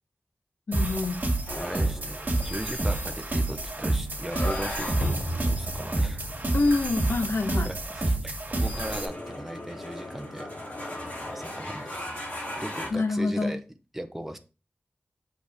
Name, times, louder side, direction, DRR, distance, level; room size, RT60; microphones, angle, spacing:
voice 1, 0.7-1.2 6.5-7.7 12.9-13.5, left 3 dB, 80° left, 1.0 m, -26 dB
sound 1, 0.7-9.1, right 2 dB, 45° right, 2.2 m, -29 dB
sound 2, 1.5-12.9, left 1 dB, 45° left, 2.7 m, -37 dB
voice 2, 1.5-5.0 5.4-6.2 7.6-10.5 11.3-12.1 12.6-13.6 13.9-14.4, right 1 dB, 5° right, 0.8 m, -38 dB
6.4 x 5.1 x 3.5 m
wide cardioid pair, 85°, 4 cm